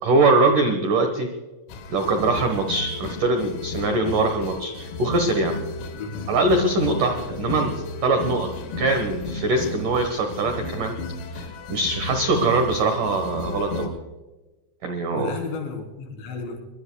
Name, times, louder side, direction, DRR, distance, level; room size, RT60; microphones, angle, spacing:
voice 1, 0.0-1.3 1.9-5.6 6.3-7.7 8.0-8.5 8.8-10.9 11.3-13.9 14.8-15.3, right 2 dB, 90° right, 5 dB, 1.8 m, -22 dB
sound 1, 1.7-13.9, left 3 dB, 80° left, 4.8 m, -34 dB
voice 2, 5.9-6.2 15.1-16.6, left 4 dB, 60° left, 3 dB, 5.8 m, -33 dB
25.5 x 22.5 x 2.3 m, 1.2 s
omnidirectional pair, 6.0 m